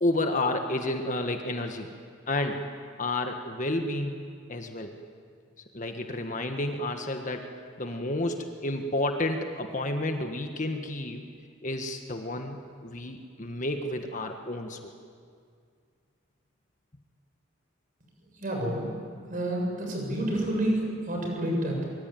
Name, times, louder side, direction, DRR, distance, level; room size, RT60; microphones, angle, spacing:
voice 1, 0.0-1.9 2.3-2.6 3.0-4.2 4.5-4.9 5.7-7.5 7.8-11.3 11.6-14.9, left 1 dB, 35° left, 5 dB, 1.6 m, -30 dB
voice 2, 18.4-18.9 19.3-21.9, right 1 dB, 40° right, 0 dB, 7.5 m, -29 dB
24.5 x 23.0 x 9.3 m, 2.2 s
head